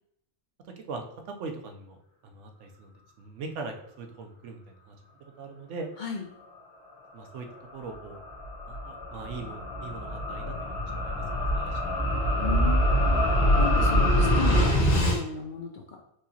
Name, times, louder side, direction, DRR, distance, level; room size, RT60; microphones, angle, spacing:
voice 1, 0.6-2.0 2.2-4.9 5.4-5.9 7.1-7.5 7.7-8.2 8.7-11.2 11.5-11.8 12.2-12.4, right 4 dB, 90° right, 4 dB, 1.0 m, -41 dB
sound 1, 7.4-15.2, equal, 80° left, 1.6 m, -25 dB
voice 2, 12.4-13.2 13.6-16.0, left 5 dB, 55° left, 0 dB, 0.5 m, -35 dB
4.7 x 2.8 x 2.8 m, 0.77 s
omnidirectional pair, 1.2 m